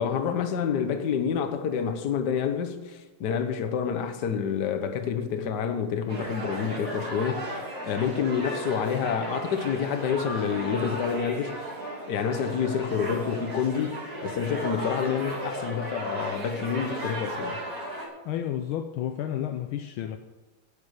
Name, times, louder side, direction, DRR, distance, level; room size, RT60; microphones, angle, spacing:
voice 1, 0.0-11.7 12.1-17.6, left 7 dB, 60° left, 1.5 m, -28 dB
sound 1, 6.1-18.1, right 1 dB, 40° right, 3.3 m, -35 dB
voice 2, 18.2-20.2, left 10 dB, 75° left, 1.4 m, -31 dB
10.0 x 9.6 x 6.5 m
omnidirectional pair, 2.3 m